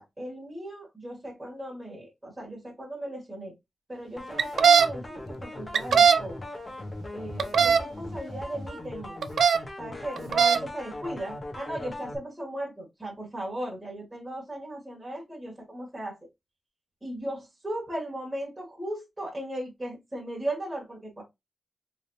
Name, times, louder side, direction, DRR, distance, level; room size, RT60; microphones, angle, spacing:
voice 1, 0.0-3.5 3.9-6.4 7.1-9.2 9.8-16.2 17.0-21.2, right 1 dB, 10° right, 1.6 m, -37 dB
sound 1, 4.2-12.2, left 1 dB, 30° left, 1.1 m, -39 dB
sound 2, 4.4-4.9 5.7-6.2 7.4-7.8 9.2-9.6 10.2-10.6, right 6 dB, 85° right, 0.4 m, -18 dB
3.7 x 3.4 x 2.7 m
wide cardioid pair, 150°, 0 cm